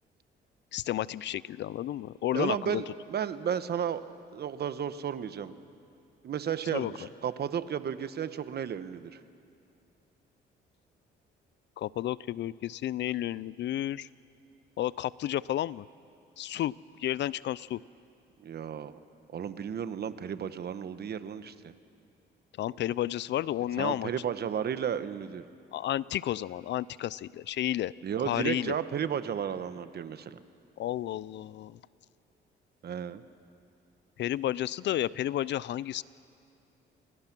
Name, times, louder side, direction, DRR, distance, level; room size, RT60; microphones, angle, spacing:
voice 1, 0.7-2.8 6.7-6.9 11.8-14.1 14.8-15.9 16.4-17.8 22.6-24.1 25.7-27.9 28.2-28.8 30.8-31.8 34.2-36.0, left 13 dB, 65° left, 21 dB, 0.4 m, -32 dB
voice 2, 2.3-4.0 4.3-5.6 6.2-9.2 18.4-19.0 19.3-21.7 23.8-25.4 28.0-30.4 32.8-33.2, right 8 dB, 55° right, 12 dB, 1.1 m, -33 dB
28.5 x 22.0 x 6.1 m, 2.5 s
cardioid pair, 90°, 20 cm